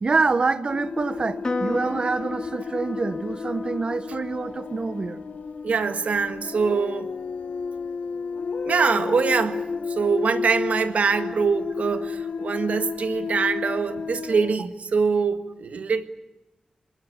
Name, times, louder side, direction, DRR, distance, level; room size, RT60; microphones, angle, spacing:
voice 1, 0.0-5.2, right 4 dB, 40° right, 1.1 m, -26 dB
sound 1, 0.7-14.6, left 5 dB, 80° left, 1.1 m, -32 dB
Piano, 1.4-8.1, left 2 dB, 30° left, 2.1 m, -37 dB
voice 2, 5.6-7.1 8.6-16.1, right 5 dB, 80° right, 1.7 m, -24 dB
26.0 x 20.0 x 8.8 m
wide cardioid pair, 125°, 2 cm